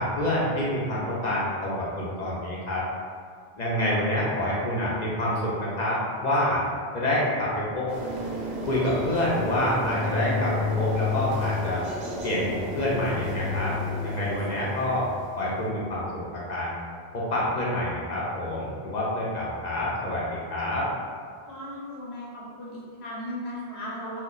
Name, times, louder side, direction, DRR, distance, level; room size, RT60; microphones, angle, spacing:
voice 1, 0.0-2.8 3.6-6.6 6.9-7.9 8.7-11.8 12.2-13.7 14.0-15.1 15.4-16.8 17.1-20.9, left 1 dB, 50° left, -6 dB, 0.6 m, -27 dB
sound 1, 7.9-15.4, left 2 dB, 55° right, 0.5 m, -31 dB
voice 2, 21.5-24.2, left 1 dB, 80° left, -6 dB, 0.9 m, -37 dB
2.3 x 2.2 x 3.7 m, 2.1 s
omnidirectional pair, 1.1 m